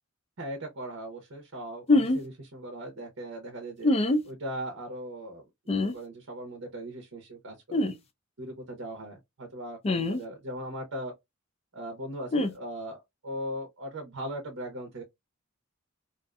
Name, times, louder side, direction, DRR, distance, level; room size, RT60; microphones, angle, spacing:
voice 1, 0.4-3.9 4.2-7.9 8.4-11.1 11.7-15.0, right 1 dB, 70° right, 0.8 m, -39 dB
sound 1, 1.9-2.2 3.8-4.2 5.7-5.9 7.7-7.9 9.8-10.2 12.3-12.5, left 2 dB, 30° left, 0.4 m, -24 dB
2.5 x 2.4 x 2.2 m
head